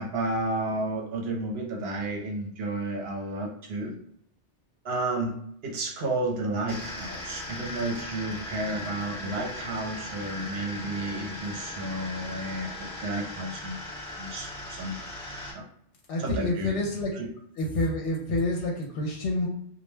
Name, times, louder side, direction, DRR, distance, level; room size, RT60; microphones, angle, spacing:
voice 1, 0.0-4.0 4.8-13.8 14.2-15.0 15.5-15.6 16.2-16.8 17.1-17.3, right 2 dB, 65° right, 0 dB, 0.9 m, -32 dB
sound 1, 6.7-15.5, left 1 dB, 5° left, 0.8 m, -38 dB
voice 2, 16.1-17.1 17.6-19.5, left 1 dB, 80° left, -1 dB, 0.9 m, -28 dB
2.2 x 2.1 x 3.1 m, 0.70 s
omnidirectional pair, 1.2 m